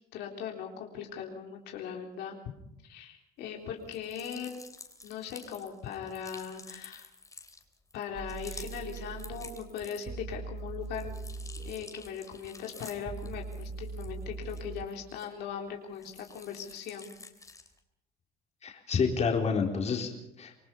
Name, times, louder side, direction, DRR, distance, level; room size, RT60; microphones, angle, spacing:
voice 1, 0.1-2.4 2.8-4.6 5.0-7.1 7.9-11.1 11.7-17.1, left 7 dB, 85° left, 1 dB, 3.7 m, -39 dB
sound 1, 3.8-10.3 10.7-15.6 15.9-17.8, left 3 dB, 20° left, 3.3 m, -50 dB
sound 2, 8.1-14.9, right 4 dB, 40° right, 1.9 m, -41 dB
voice 2, 18.6-20.6, left 5 dB, 40° left, 2 dB, 4.1 m, -29 dB
27.0 x 20.5 x 5.6 m, 0.83 s
cardioid pair, 110°, 17 cm